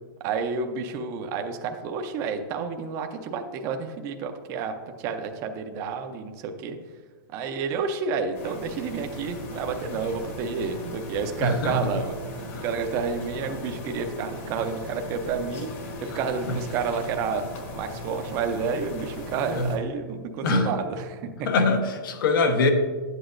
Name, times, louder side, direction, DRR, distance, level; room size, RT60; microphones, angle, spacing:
voice 1, 0.2-6.8 7.3-12.1 12.6-15.7 16.0-17.4 17.7-21.5, right 5 dB, 25° right, 5 dB, 0.5 m, -30 dB
sound 1, 8.3-19.8, left 1 dB, 45° left, 1.3 m, -38 dB
voice 2, 11.4-11.8 16.5-16.6 19.5-19.7 20.4-20.7 21.5-22.7, left 3 dB, 70° left, 7 dB, 1.1 m, -23 dB
10.5 x 8.0 x 2.5 m, 1.4 s
supercardioid pair, 170°, 12 cm